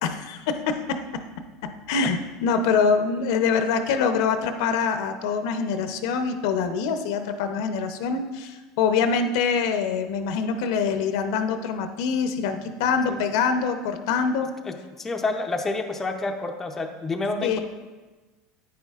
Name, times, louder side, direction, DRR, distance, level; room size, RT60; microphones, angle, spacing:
voice 1, 0.0-1.2 1.6-14.5 17.4-17.6, left 5 dB, 75° left, 7 dB, 0.7 m, -25 dB
voice 2, 14.6-17.6, left 3 dB, 15° left, 3 dB, 0.6 m, -29 dB
9.7 x 9.4 x 2.4 m, 1.2 s
cardioid pair, 155°, 2 cm